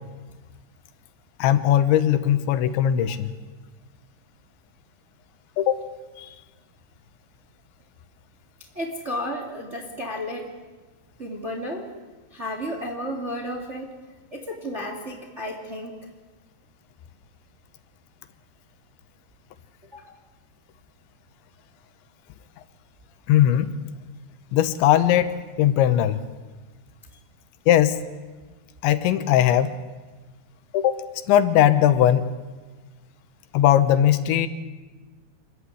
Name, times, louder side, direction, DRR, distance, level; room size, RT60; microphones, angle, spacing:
voice 1, 1.4-3.3 5.6-5.8 6.2-6.3 23.3-23.7 24.5-26.2 27.7-28.0 28.8-29.7 30.7-31.0 31.3-32.3 33.5-34.5, left 11 dB, 85° left, 11 dB, 3.3 m, -19 dB
voice 2, 8.7-10.5 11.2-11.9 12.3-13.9 14.3-15.9 19.9-20.1, equal, 25° right, 2 dB, 1.4 m, -32 dB
27.0 x 14.5 x 9.8 m, 1.3 s
omnidirectional pair, 5.2 m